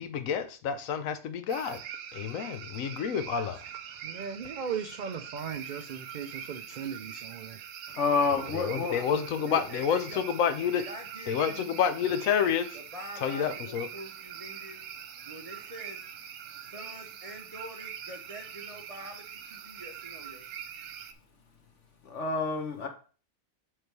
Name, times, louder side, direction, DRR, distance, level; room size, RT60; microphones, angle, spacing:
voice 1, 0.0-1.8 2.1-3.6 8.5-10.8 11.3-12.7 13.2-13.9, left 8 dB, 75° left, 1.1 m, -29 dB
sound 1, 1.5-21.1, right 9 dB, 85° right, 1.1 m, -43 dB
voice 2, 3.9-7.6, right 7 dB, 70° right, 0.4 m, -37 dB
voice 3, 7.9-9.0 9.4-9.6 22.0-22.9, left 4 dB, 60° left, 1.5 m, -28 dB
voice 4, 8.7-11.8 12.7-14.8 15.3-16.0 16.7-20.4, right 1 dB, 35° right, 0.6 m, -45 dB
7.8 x 3.3 x 4.6 m
omnidirectional pair, 1.4 m